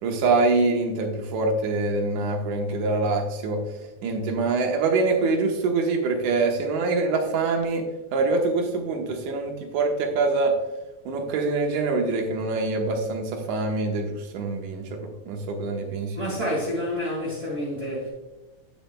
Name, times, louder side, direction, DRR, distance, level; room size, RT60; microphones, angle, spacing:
voice 1, 0.0-3.6 4.0-10.6 11.1-16.4, right 3 dB, 85° right, 2.6 m, -25 dB
voice 2, 16.1-18.1, equal, 30° right, 1.6 m, -28 dB
8.7 x 8.6 x 2.2 m
omnidirectional pair, 3.4 m